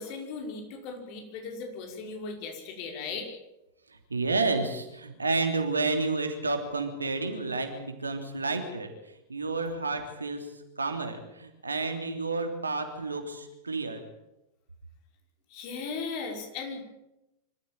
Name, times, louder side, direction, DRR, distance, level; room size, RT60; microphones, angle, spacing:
voice 1, 0.0-3.3 15.5-16.8, left 4 dB, 45° left, 3 dB, 5.6 m, -37 dB
voice 2, 3.9-14.0, right 3 dB, 75° right, 6 dB, 3.1 m, -31 dB
25.5 x 14.5 x 9.1 m, 0.91 s
figure-of-eight pair, 90°, 0 cm